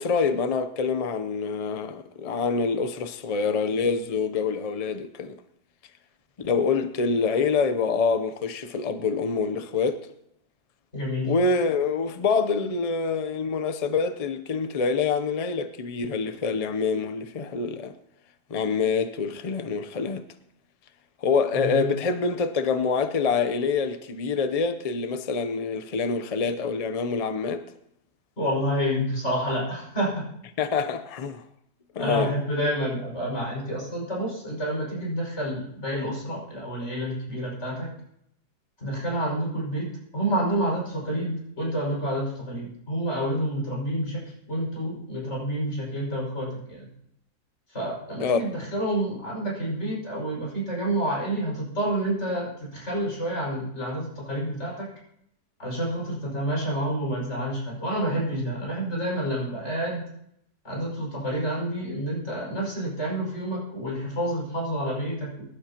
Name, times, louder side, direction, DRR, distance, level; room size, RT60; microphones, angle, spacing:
voice 1, 0.0-5.4 6.4-10.1 11.2-17.9 18.5-20.2 21.2-27.7 30.6-31.4 31.9-32.3 48.2-48.4, left 5 dB, 65° left, 0.3 m, -26 dB
voice 2, 10.9-11.3 21.5-21.8 28.4-30.2 32.0-37.9 38.8-39.9 40.1-44.2 44.5-46.9 47.7-54.9 55.6-60.0 60.6-65.4, right 1 dB, 45° left, 5.9 m, -29 dB
23.0 x 12.0 x 2.9 m
omnidirectional pair, 1.7 m